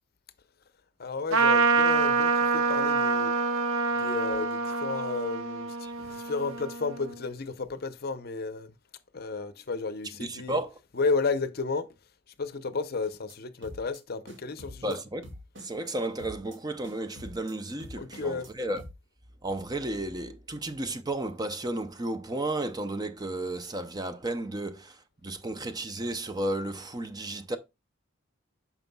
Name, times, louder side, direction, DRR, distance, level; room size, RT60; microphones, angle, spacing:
voice 1, 1.0-3.3 4.0-8.7 9.1-10.6 10.9-11.9 12.4-15.0 18.0-18.5, left 4 dB, 45° left, 0.6 m, -32 dB
Trumpet, 1.3-7.1, right 4 dB, 80° right, 0.7 m, -26 dB
voice 2, 10.2-10.8 14.8-15.2 15.6-18.8 19.4-27.6, right 1 dB, 20° right, 0.5 m, -33 dB
sound 1, 13.0-13.4 13.6-14.0 14.3-15.0 15.2-15.9 16.2-16.6 16.8-17.5 17.8-18.5 18.8-18.9, equal, 60° right, 2.2 m, -45 dB
9.2 x 6.0 x 2.2 m
head